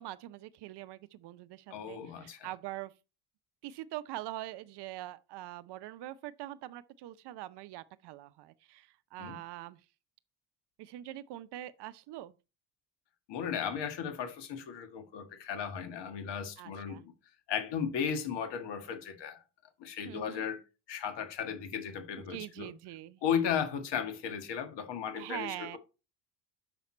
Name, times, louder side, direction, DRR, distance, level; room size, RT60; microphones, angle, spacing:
voice 1, 0.0-2.9 3.6-9.8 10.8-12.3 16.6-17.0 20.0-20.5 22.3-23.2 25.2-25.8, right 15 dB, 55° right, 0.7 m, -43 dB
voice 2, 1.7-2.5 9.2-9.4 13.3-17.1 17.5-19.4 19.8-22.7 23.2-25.8, left 7 dB, 60° left, 1.7 m, -35 dB
6.9 x 5.7 x 4.3 m
hypercardioid pair, 70°, 49 cm